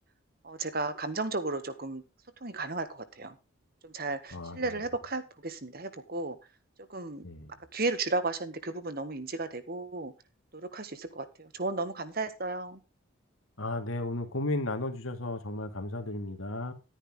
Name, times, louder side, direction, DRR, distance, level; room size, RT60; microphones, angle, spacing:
voice 1, 0.4-2.0 2.4-3.3 3.8-6.4 6.9-7.2 7.7-10.1 10.6-12.8, right 3 dB, 45° right, 11 dB, 1.6 m, -34 dB
voice 2, 4.3-4.7 7.2-7.5 13.6-16.7, left 2 dB, 75° left, 6 dB, 2.3 m, -34 dB
11.5 x 10.0 x 3.7 m, 0.29 s
head